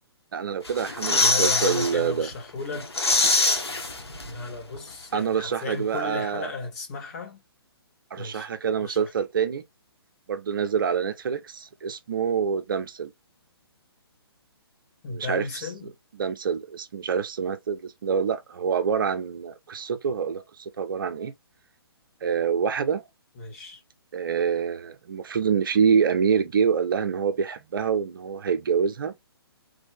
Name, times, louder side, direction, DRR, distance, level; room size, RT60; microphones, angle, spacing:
voice 1, 0.3-2.3 5.1-6.5 8.1-9.6 10.3-13.1 15.1-21.3 22.2-23.0 24.1-29.1, right 6 dB, 55° right, 0.7 m, -26 dB
sound 1, 0.6-1.9 2.3-2.4 2.7-4.5 4.7-4.8, left 2 dB, 75° left, 1.5 m, -23 dB
voice 2, 1.2-2.9 4.3-7.4 8.2-8.5 8.8-9.1 15.0-15.9 23.4-23.8, left 4 dB, 35° left, 2.5 m, -34 dB
3.5 x 3.5 x 3.5 m
figure-of-eight pair, 130°, 13 cm